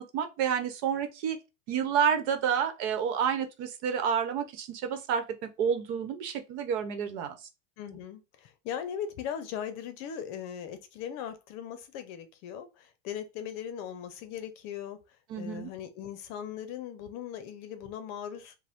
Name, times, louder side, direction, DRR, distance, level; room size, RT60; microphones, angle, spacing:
voice 1, 0.0-1.4 1.7-5.2 5.6-7.3 15.3-15.7, right 7 dB, 60° right, 1.0 m, -29 dB
voice 2, 7.8-15.0 15.3-18.5, left 9 dB, 45° left, 0.7 m, -39 dB
4.9 x 2.2 x 3.6 m
supercardioid pair, 145°, 38 cm